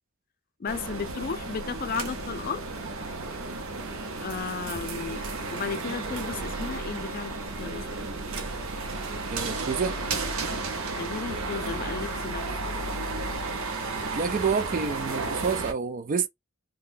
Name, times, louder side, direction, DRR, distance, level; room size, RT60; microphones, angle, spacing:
voice 1, 0.6-2.6 4.2-5.2 5.5-7.3 7.6-8.1 11.0-12.5, left 5 dB, 45° left, 0.4 m, -34 dB
sound 1, 0.7-15.7, right 3 dB, 80° right, 0.6 m, -33 dB
voice 2, 9.3-10.0 14.0-16.3, right 5 dB, 40° right, 0.3 m, -28 dB
2.6 x 2.2 x 3.7 m
head